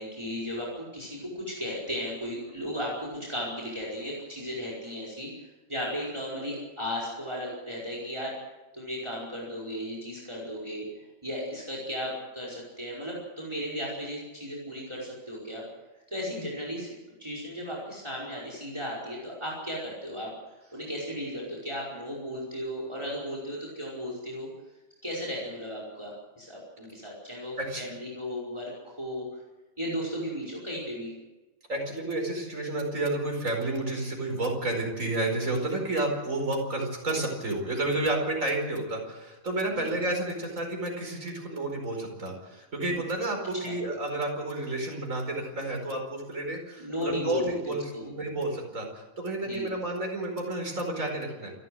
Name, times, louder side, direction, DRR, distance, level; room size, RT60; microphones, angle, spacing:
voice 1, 0.0-5.3 5.7-8.3 8.7-10.9 11.2-15.6 16.1-16.9 17.2-20.3 20.7-24.5 25.0-29.2 29.8-31.1 39.8-39.9 43.6-43.7 46.8-48.0 49.4-49.7, equal, 20° right, -4 dB, 5.1 m, -35 dB
voice 2, 31.7-51.5, right 2 dB, 70° right, 1 dB, 5.3 m, -31 dB
28.5 x 12.5 x 7.9 m, 1.1 s
omnidirectional pair, 1.5 m